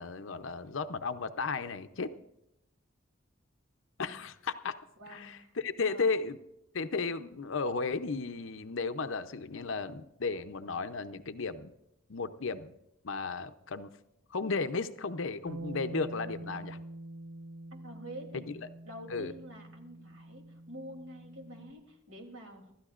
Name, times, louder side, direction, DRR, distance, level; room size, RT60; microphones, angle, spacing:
voice 1, 0.0-2.1 4.0-4.8 5.1-6.4 6.7-11.7 12.1-12.7 13.0-13.9 14.3-16.8 19.1-19.3, left 4 dB, 70° left, 10 dB, 0.7 m, -34 dB
voice 2, 5.0-6.2 17.7-18.5 18.8-22.7, equal, 70° right, 2 dB, 3.0 m, -48 dB
Bass guitar, 15.5-21.7, right 1 dB, 85° right, 1.1 m, -46 dB
25.0 x 13.0 x 2.5 m, 0.83 s
head